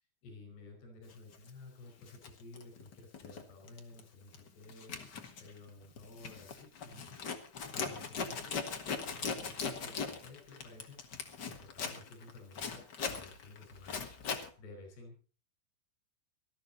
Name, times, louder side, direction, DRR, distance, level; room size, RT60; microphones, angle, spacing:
voice 1, 0.0-7.1 7.7-8.6 9.1-11.0 11.3-14.1 14.6-15.2, left 3 dB, 90° left, 4 dB, 7.0 m, -53 dB
Zipper (clothing), 1.3-1.5 2.0-3.4 3.7-4.0 4.3-14.5, left 5 dB, 75° left, 1.0 m, -40 dB
19.0 x 13.0 x 4.2 m, 0.37 s
omnidirectional pair, 4.6 m